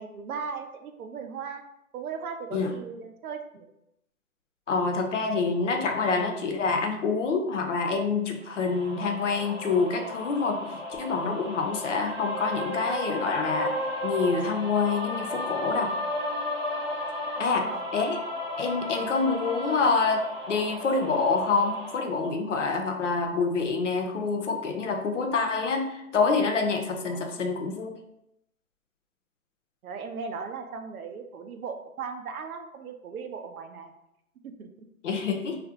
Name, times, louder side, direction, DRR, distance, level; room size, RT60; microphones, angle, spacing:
voice 1, 0.0-1.6 1.9-3.7 17.3-17.9 27.1-27.4 29.8-33.9 34.4-34.9, right 5 dB, 85° right, 6 dB, 0.5 m, -38 dB
voice 2, 4.7-13.8 14.0-15.9 17.4-17.6 17.9-18.2 18.6-20.2 20.5-27.9 35.0-35.6, left 4 dB, 60° left, 4 dB, 0.5 m, -27 dB
sound 1, 8.4-22.0, left 1 dB, 45° right, 0.7 m, -34 dB
2.4 x 2.1 x 2.7 m, 0.82 s
hypercardioid pair, 170°, 42 cm